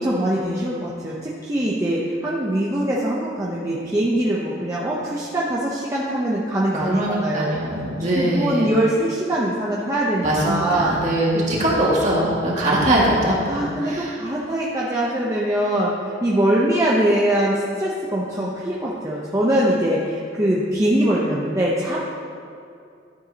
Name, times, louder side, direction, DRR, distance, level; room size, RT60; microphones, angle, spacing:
voice 1, 0.0-7.6 8.1-10.9 13.5-22.0, right 1 dB, 20° right, -6 dB, 0.8 m, -22 dB
voice 2, 6.7-8.7 10.2-14.2, right 1 dB, 40° right, -5 dB, 2.1 m, -22 dB
13.0 x 7.8 x 2.9 m, 2.4 s
head